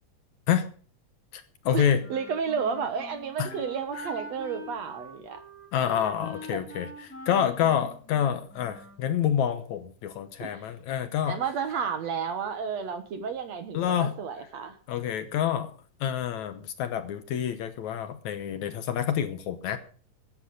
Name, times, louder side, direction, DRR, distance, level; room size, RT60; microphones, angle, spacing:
voice 1, 1.3-2.0 3.4-3.5 5.7-11.4 13.7-14.1 14.9-15.7 16.0-19.8, left 9 dB, 70° left, 10 dB, 2.2 m, -28 dB
Wind instrument woodwind instrument, 2.0-9.1, equal, 5° left, 3.4 m, -44 dB
voice 2, 2.1-5.4 10.4-10.7 11.3-14.8, right 6 dB, 60° right, 9 dB, 2.2 m, -32 dB
14.5 x 9.9 x 6.5 m, 0.42 s
omnidirectional pair, 3.9 m